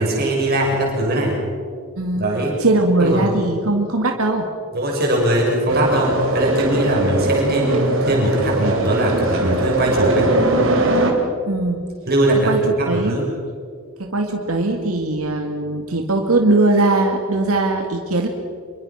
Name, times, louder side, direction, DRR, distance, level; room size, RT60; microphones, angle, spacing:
voice 1, 0.0-1.4 2.1-2.5 3.0-3.4 4.7-10.3 12.1-13.2, right 1 dB, 45° right, -1 dB, 6.0 m, -20 dB
voice 2, 2.0-4.5 11.5-11.9 12.5-12.6 12.9-13.2 14.0-18.3, right 2 dB, 85° right, 2 dB, 2.3 m, -20 dB
sound 1, 5.7-11.1, right 1 dB, 65° right, 3.6 m, -20 dB
27.0 x 23.0 x 5.9 m, 2.1 s
head